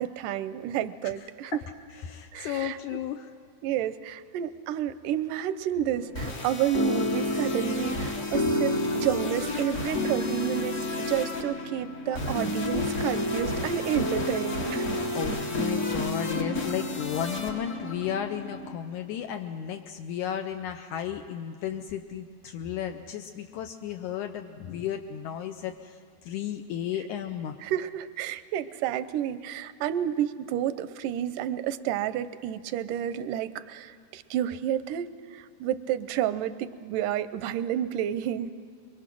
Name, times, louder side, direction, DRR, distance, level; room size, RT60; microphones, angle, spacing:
voice 1, 0.0-1.6 2.3-3.0 3.6-14.9 27.6-38.5, right 11 dB, 85° right, 13 dB, 2.2 m, -30 dB
voice 2, 2.0-3.3 14.9-26.0 26.2-27.5, left 9 dB, 80° left, 6 dB, 2.0 m, -34 dB
sound 1, 5.9-18.7, left 1 dB, 40° left, 1.1 m, -30 dB
23.0 x 23.0 x 6.1 m, 2.2 s
omnidirectional pair, 3.6 m